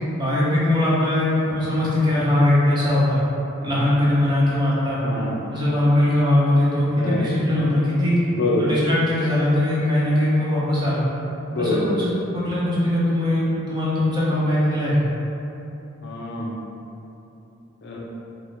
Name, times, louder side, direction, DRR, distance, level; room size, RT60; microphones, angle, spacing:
voice 1, 0.1-3.2 3.6-5.0 5.5-8.2 8.6-11.0 11.6-15.1, left 1 dB, 20° right, -9 dB, 1.0 m, -20 dB
voice 2, 8.3-8.7 11.5-12.1 16.0-16.5 17.8-18.0, left 2 dB, 55° left, -3 dB, 0.6 m, -25 dB
5.3 x 2.3 x 3.6 m, 2.9 s
head